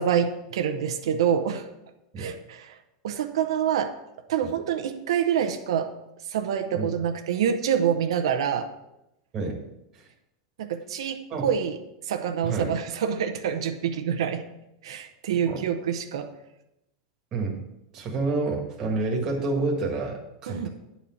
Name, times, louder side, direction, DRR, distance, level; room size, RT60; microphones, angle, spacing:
voice 1, 0.0-1.7 2.2-2.7 3.0-3.9 4.3-5.9 6.3-8.7 10.6-11.8 12.0-14.4 14.8-16.3 20.5-20.7, right 8 dB, 90° right, 7 dB, 0.8 m, -26 dB
voice 2, 15.3-15.6 17.3-17.6 17.9-20.7, right 3 dB, 20° right, 0 dB, 1.6 m, -28 dB
10.0 x 4.2 x 7.2 m, 0.88 s
supercardioid pair, 175°, 3 cm